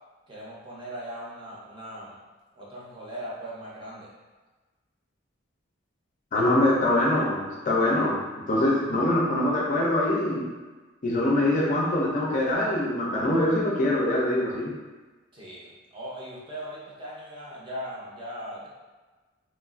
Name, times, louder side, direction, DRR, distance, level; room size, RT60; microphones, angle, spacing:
voice 1, 0.3-2.1 2.5-4.1 15.3-18.7, equal, 25° right, -6 dB, 0.6 m, -39 dB
voice 2, 6.3-10.5 11.0-14.8, left 1 dB, 40° left, -4 dB, 0.5 m, -24 dB
3.0 x 2.3 x 2.4 m, 1.3 s
head